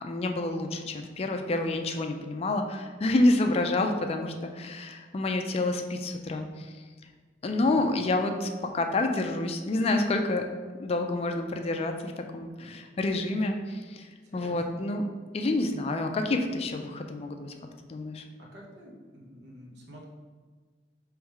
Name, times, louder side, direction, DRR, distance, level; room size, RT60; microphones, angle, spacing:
voice 1, 0.0-6.8 7.4-10.5 10.8-15.0 15.3-17.5 17.8-18.2, left 2 dB, 35° left, 5 dB, 0.3 m, -28 dB
voice 2, 7.5-8.0 12.6-12.8 14.2-14.8 18.4-20.1, equal, 75° right, -2 dB, 1.0 m, -49 dB
3.5 x 3.1 x 4.6 m, 1.5 s
head